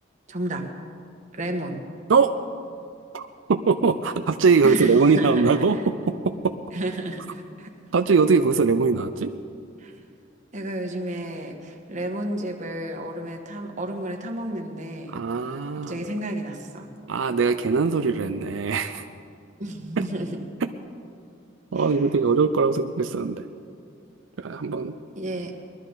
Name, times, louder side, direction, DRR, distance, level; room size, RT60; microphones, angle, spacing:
voice 1, 0.3-0.7 1.3-1.8 4.6-5.9 6.7-7.7 9.8-9.9 10.5-15.1 15.9-16.9 19.6-20.3 21.8-21.9 25.1-25.5, right 1 dB, 40° right, 3 dB, 1.4 m, -32 dB
voice 2, 3.1-5.8 6.1-6.5 7.9-9.3 15.1-16.0 17.1-19.1 20.0-20.1 20.6-20.7 21.7-23.5 24.4-24.9, right 4 dB, 90° right, 8 dB, 0.5 m, -21 dB
20.5 x 12.5 x 4.0 m, 2.3 s
head